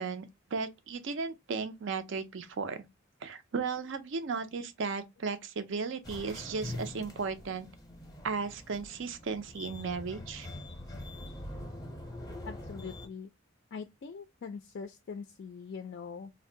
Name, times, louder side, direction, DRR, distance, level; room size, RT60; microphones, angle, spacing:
voice 1, 0.0-2.8 3.2-7.7 8.2-10.5, right 5 dB, 60° right, 0.5 m, -35 dB
sound 1, 6.0-13.1, left 1 dB, 15° left, 0.6 m, -44 dB
voice 2, 12.5-13.3 13.7-16.3, left 5 dB, 55° left, 0.3 m, -43 dB
2.5 x 2.1 x 3.7 m
head